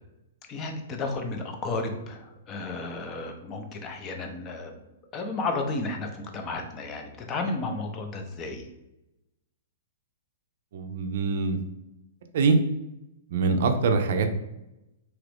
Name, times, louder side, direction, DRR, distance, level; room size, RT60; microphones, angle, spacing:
voice 1, 0.5-4.7 5.1-8.7, left 3 dB, 25° left, 4 dB, 0.5 m, -33 dB
voice 2, 10.7-11.6 12.3-12.6 13.3-14.3, right 4 dB, 60° right, 7 dB, 0.4 m, -23 dB
2.9 x 2.5 x 3.3 m, 0.92 s
hypercardioid pair, 150°, 0 cm